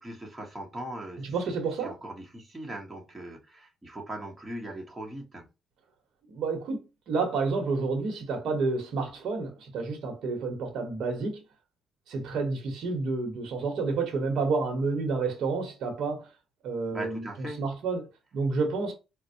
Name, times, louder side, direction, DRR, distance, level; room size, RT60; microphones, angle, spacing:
voice 1, 0.0-1.5 1.8-5.5 16.9-17.6, right 1 dB, 15° right, 1.0 m, -40 dB
voice 2, 1.2-1.9 6.3-11.4 12.1-16.3 16.6-18.9, right 4 dB, 75° right, 0.9 m, -30 dB
4.2 x 2.1 x 2.6 m
cardioid pair, 90°, 0 cm